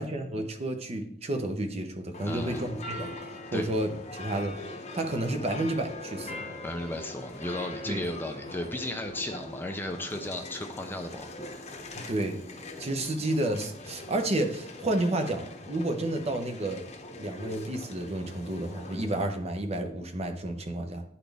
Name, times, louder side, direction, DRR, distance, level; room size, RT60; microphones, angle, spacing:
voice 1, 0.0-3.1 3.5-4.6 4.9-6.5 7.9-8.0 12.0-12.4 12.8-16.8 17.2-21.0, right 1 dB, 35° right, 6 dB, 0.7 m, -31 dB
sound 1, 2.1-19.3, left 2 dB, 35° left, 0.9 m, -42 dB
voice 2, 2.2-2.6 3.5-3.7 6.6-11.5, left 1 dB, 10° left, 5 dB, 0.4 m, -35 dB
10.0 x 4.2 x 3.4 m, 0.69 s
head